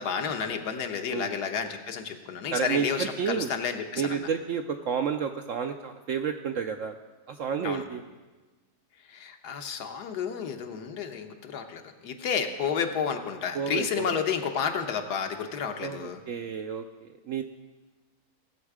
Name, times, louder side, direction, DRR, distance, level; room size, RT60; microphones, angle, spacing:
voice 1, 0.0-4.3 7.6-7.8 9.1-16.2, left 6 dB, 70° left, 5 dB, 1.5 m, -31 dB
voice 2, 1.1-1.4 2.5-3.5 4.0-6.9 7.3-8.0 13.5-14.2 15.8-17.4, right 7 dB, 70° right, 6 dB, 0.7 m, -31 dB
18.5 x 7.2 x 4.8 m, 1.3 s
omnidirectional pair, 1.8 m